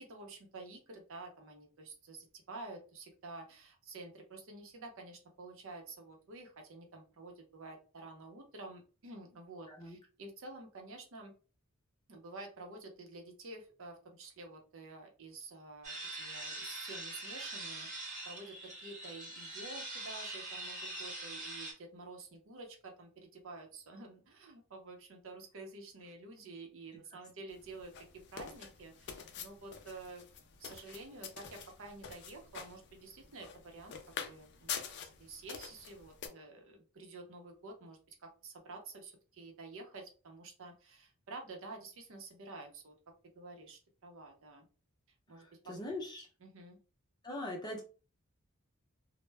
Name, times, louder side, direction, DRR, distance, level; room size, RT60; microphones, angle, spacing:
voice 1, 0.0-11.3 12.1-30.2 30.6-34.0 34.3-42.9 43.3-44.7 45.3-45.7 46.2-46.8, right 3 dB, 65° right, 3 dB, 0.6 m, -50 dB
sound 1, 15.8-21.7, right 2 dB, 35° right, 0.8 m, -43 dB
sound 2, 27.5-36.3, left 7 dB, 55° left, 0.4 m, -46 dB
voice 2, 45.7-46.3 47.2-47.8, left 1 dB, 20° left, 0 dB, 0.7 m, -40 dB
2.1 x 2.0 x 3.3 m, 0.36 s
head